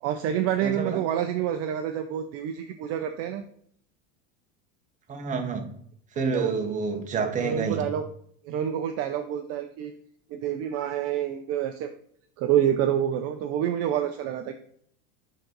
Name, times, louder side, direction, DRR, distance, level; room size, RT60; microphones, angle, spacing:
voice 1, 0.0-3.5 6.2-6.5 7.4-8.0 8.5-9.9 10.3-11.9 12.4-14.5, right 10 dB, 45° right, 0.6 m, -27 dB
voice 2, 0.6-1.0 5.1-5.7 6.1-7.9, right 5 dB, 20° right, 1.1 m, -28 dB
7.4 x 3.9 x 5.2 m
supercardioid pair, 140°, 35 cm